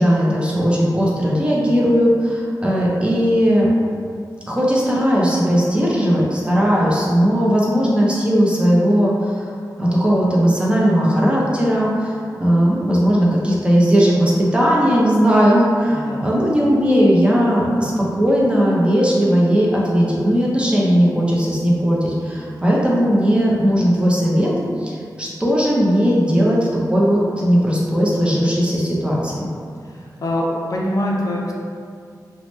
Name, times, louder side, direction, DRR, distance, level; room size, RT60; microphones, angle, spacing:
voice 1, 0.0-3.7 4.5-9.5 9.8-24.5 24.8-26.6 26.9-29.5, equal, 15° right, -5 dB, 0.5 m, -17 dB
voice 2, 15.9-16.3 30.2-31.5, left 1 dB, 55° left, -3 dB, 0.4 m, -23 dB
2.9 x 2.1 x 3.0 m, 2.3 s
wide cardioid pair, 120°, 7 cm